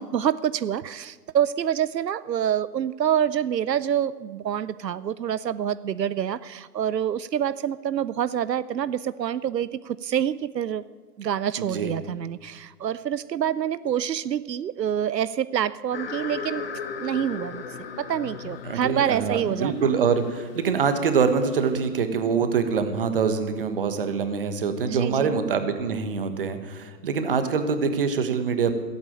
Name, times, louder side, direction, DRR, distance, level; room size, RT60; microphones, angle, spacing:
voice 1, 0.0-10.8 11.2-16.7 17.0-17.6 18.0-19.7 24.8-25.4, right 9 dB, 85° right, 16 dB, 0.7 m, -26 dB
voice 2, 11.6-11.9 18.6-28.8, right 5 dB, 35° right, 9 dB, 1.3 m, -24 dB
sound 1, 15.9-21.7, left 5 dB, 35° left, 1.4 m, -37 dB
16.5 x 8.7 x 8.8 m, 1.4 s
hypercardioid pair, 160°, 48 cm